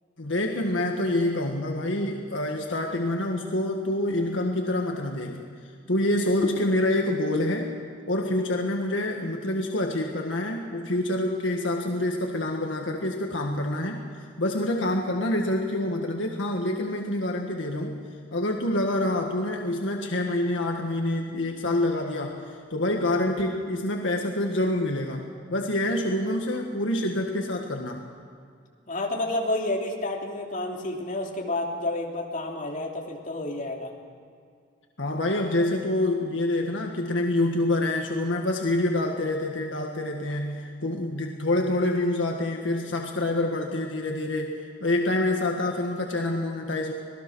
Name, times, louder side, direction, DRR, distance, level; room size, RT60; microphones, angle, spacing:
voice 1, 0.2-5.5 5.9-7.7 8.1-18.0 18.3-28.0 35.0-46.9, left 1 dB, 85° left, 2 dB, 1.8 m, -27 dB
voice 2, 28.9-33.9, left 2 dB, 45° left, 0 dB, 3.0 m, -30 dB
26.5 x 19.5 x 6.3 m, 2.2 s
head